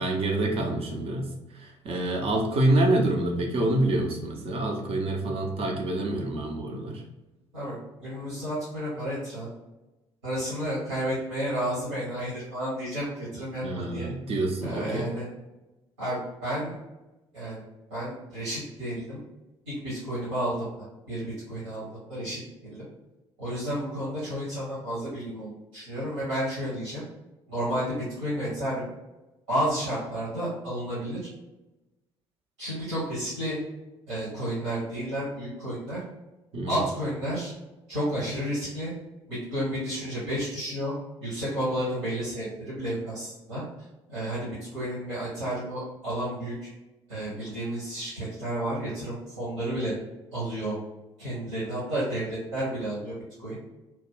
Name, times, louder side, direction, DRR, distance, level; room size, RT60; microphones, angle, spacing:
voice 1, 0.0-7.0 13.6-15.1 36.5-36.8, right 1 dB, 40° right, 1 dB, 0.7 m, -27 dB
voice 2, 7.5-9.5 10.2-14.1 14.6-15.3 16.0-16.7 17.3-17.6 17.9-19.2 19.6-22.9 23.4-27.0 27.5-28.9 29.5-31.2 32.6-33.6 34.1-36.0 36.6-37.5 37.9-38.9 39.3-40.9 41.2-43.6 44.1-46.5 47.1-49.9 50.3-50.7 51.2-53.6, right 1 dB, 75° right, -10 dB, 1.4 m, -31 dB
3.0 x 2.3 x 3.7 m, 1.0 s
figure-of-eight pair, 50°, 15 cm